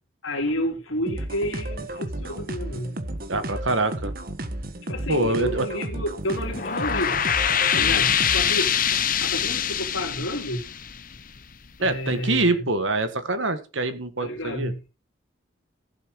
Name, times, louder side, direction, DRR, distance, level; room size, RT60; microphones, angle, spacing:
voice 1, 0.2-3.0 4.9-7.2 7.7-10.6 11.8-12.7 14.2-14.8, equal, 75° left, 3.3 m, -30 dB
sound 1, 1.1-8.7, right 1 dB, 45° right, 1.3 m, -33 dB
voice 2, 3.3-4.1 5.1-5.7 7.7-8.1 11.8-14.7, right 2 dB, 70° right, 1.7 m, -25 dB
sound 2, 6.4-11.7, left 8 dB, 40° left, 0.9 m, -24 dB
16.0 x 7.4 x 4.7 m
head